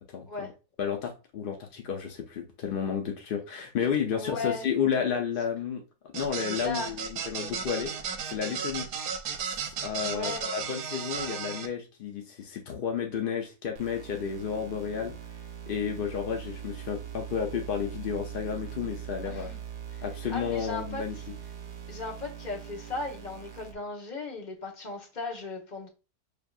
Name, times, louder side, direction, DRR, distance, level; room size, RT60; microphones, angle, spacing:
voice 1, 0.1-0.5 0.8-5.8 6.1-7.9 8.3-8.9 9.8-15.2 15.7-19.5 20.0-21.2, left 7 dB, 70° left, 0.5 m, -31 dB
voice 2, 4.1-4.6 6.6-6.9 10.0-10.5 19.2-19.6 19.9-20.0 20.3-21.3 21.9-25.9, left 3 dB, 35° left, 1.0 m, -36 dB
sound 1, 6.1-11.7, right 6 dB, 70° right, 1.1 m, -34 dB
sound 2, 13.7-23.7, right 9 dB, 50° right, 0.7 m, -42 dB
6.6 x 2.7 x 2.4 m
omnidirectional pair, 1.7 m